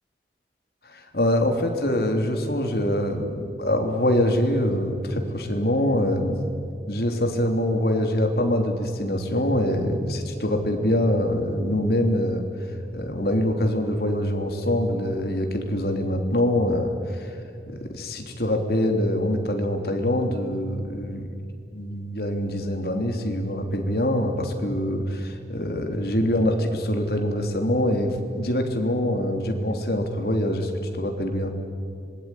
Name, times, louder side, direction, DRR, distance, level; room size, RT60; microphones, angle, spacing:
voice 1, 0.9-6.4 6.9-12.5 12.9-17.3 17.7-21.3 21.7-30.7 31.0-31.5, left 1 dB, 65° left, 4 dB, 3.3 m, -24 dB
25.5 x 21.0 x 9.9 m, 2.5 s
head